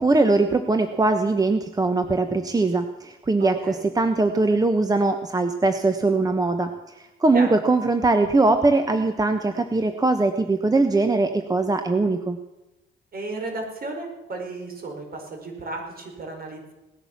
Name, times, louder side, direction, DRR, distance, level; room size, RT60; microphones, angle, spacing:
voice 1, 0.0-6.7 7.2-12.4, right 3 dB, 20° right, 8 dB, 1.1 m, -21 dB
voice 2, 3.4-3.8 7.3-7.5 13.1-16.7, right 2 dB, 50° right, 3 dB, 5.1 m, -34 dB
18.5 x 11.0 x 7.4 m, 1.0 s
cardioid pair, 90°, 20 cm